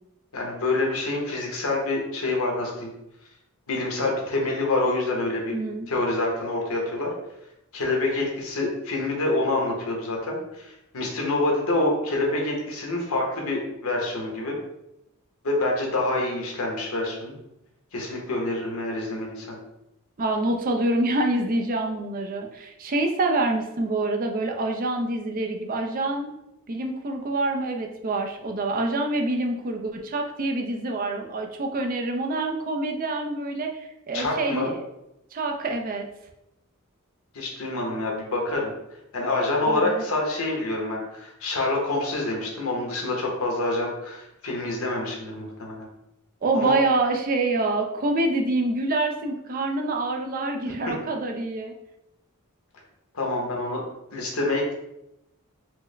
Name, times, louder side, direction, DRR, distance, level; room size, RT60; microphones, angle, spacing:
voice 1, 0.3-2.9 3.7-5.6 5.9-7.1 7.7-14.6 15.4-17.3 17.9-19.6 34.1-34.7 37.3-38.7 39.1-45.8 46.5-46.8 53.1-53.8 54.1-54.7, left 2 dB, 75° left, 0 dB, 0.9 m, -27 dB
voice 2, 5.5-5.9 20.2-26.3 26.7-34.8 35.3-36.1 39.7-40.0 46.4-51.7, right 2 dB, 40° right, 3 dB, 0.4 m, -26 dB
4.4 x 2.1 x 3.2 m, 0.86 s
head